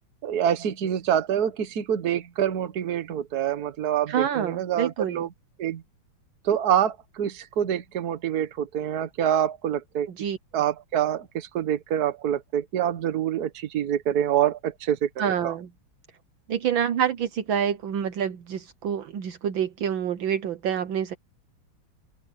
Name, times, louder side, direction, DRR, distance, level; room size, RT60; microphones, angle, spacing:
voice 1, 0.2-5.3 5.6-5.8 6.4-10.1 10.5-15.5, right 10 dB, 50° right, 1.6 m, -26 dB
voice 2, 4.1-5.3 10.1-10.4 15.2-15.7 16.5-21.1, right 8 dB, 70° right, 1.7 m, -27 dB
open air
omnidirectional pair, 2.3 m